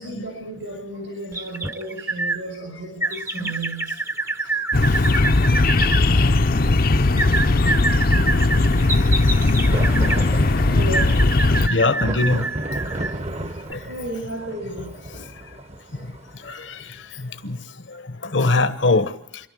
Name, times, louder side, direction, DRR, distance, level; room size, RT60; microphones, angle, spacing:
voice 1, 0.0-3.9 10.7-11.1 13.9-14.9, right 2 dB, 70° right, 1 dB, 6.1 m, -33 dB
sound 1, 1.3-2.4 3.0-6.0 7.2-10.3 10.9-13.2 13.7-13.8, right 3 dB, 15° right, 0.7 m, -27 dB
sound 2, 4.7-11.7, left 2 dB, 50° left, 0.7 m, -18 dB
sound 3, 5.3-5.4 9.1-17.5, right 1 dB, 35° right, 1.0 m, -34 dB
voice 2, 11.7-12.4 13.7-13.8 15.1-15.2 16.4-16.9 17.4-17.6 18.2-19.1, left 3 dB, 70° left, 11 dB, 1.2 m, -22 dB
27.0 x 12.0 x 8.7 m, 0.77 s
head